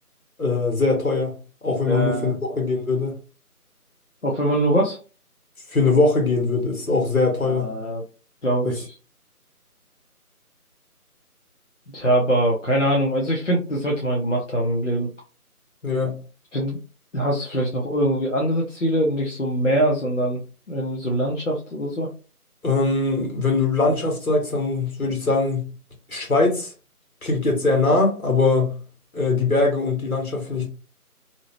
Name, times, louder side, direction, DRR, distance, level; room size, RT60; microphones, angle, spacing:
voice 1, 0.4-1.4 1.6-3.2 5.7-7.7 8.6-8.7 15.8-16.2 22.6-25.7 26.1-26.7 27.2-28.8 29.1-30.7, left 3 dB, 70° left, 1.3 m, -21 dB
voice 2, 1.9-2.3 4.2-5.0 7.4-8.0 8.4-9.0 11.9-15.1 16.5-16.8 17.1-20.4 20.7-22.1, right 1 dB, 55° left, 0.6 m, -23 dB
2.7 x 2.1 x 2.9 m
figure-of-eight pair, 175°, 45 cm